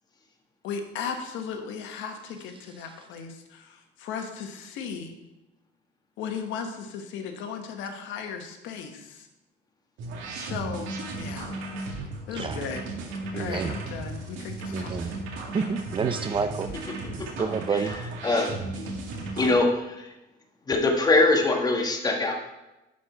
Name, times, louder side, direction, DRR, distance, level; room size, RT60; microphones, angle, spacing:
voice 1, 0.6-5.2 6.2-9.3 10.3-11.5 11.8-12.8 13.3-15.2 15.5-15.7, left 6 dB, 80° left, 5 dB, 1.3 m, -36 dB
sound 1, 10.0-19.5, right 2 dB, 85° right, 2.0 m, -36 dB
voice 2, 13.3-13.7 14.7-15.1 15.5-16.7 17.4-17.9, right 5 dB, 25° right, 8 dB, 0.5 m, -28 dB
voice 3, 17.7-18.6 19.3-20.1 20.7-22.3, left 2 dB, 20° left, 1 dB, 1.6 m, -23 dB
11.5 x 4.4 x 5.7 m, 0.98 s
cardioid pair, 140°, 19 cm